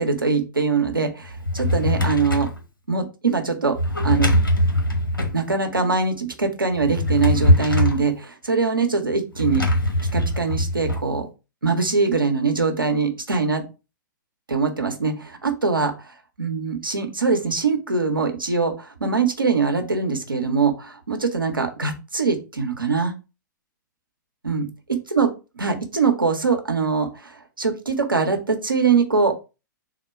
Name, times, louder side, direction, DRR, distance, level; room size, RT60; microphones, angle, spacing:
voice 1, 0.0-2.5 2.9-3.8 4.0-4.3 5.3-9.6 10.1-11.3 11.6-13.6 14.5-15.9 16.4-23.1 24.4-24.7 25.1-25.3 25.6-29.3, right 4 dB, 90° right, 4 dB, 0.8 m, -22 dB
Drawer open or close, 1.3-2.6 3.7-5.4 6.7-8.1 9.4-11.0, left 1 dB, 90° left, 1.0 m, -21 dB
3.7 x 2.2 x 4.4 m, 0.29 s
figure-of-eight pair, 110°, 11 cm